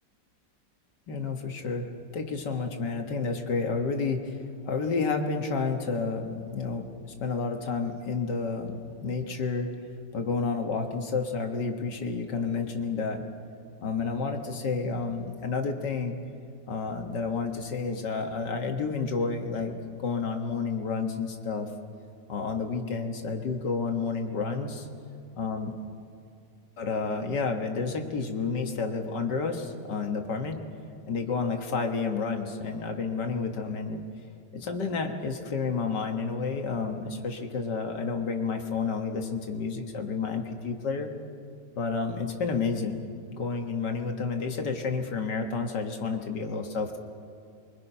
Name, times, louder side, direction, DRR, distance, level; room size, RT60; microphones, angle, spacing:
voice 1, 1.1-6.9 7.2-9.7 10.1-13.2 13.8-16.2 16.7-21.7 22.3-24.9 25.4-25.7 26.8-30.6 31.1-34.0 34.5-41.1 41.8-43.0 43.3-47.0, left 4 dB, 65° left, 4 dB, 2.0 m, -30 dB
28.0 x 23.5 x 5.6 m, 2.5 s
omnidirectional pair, 2.0 m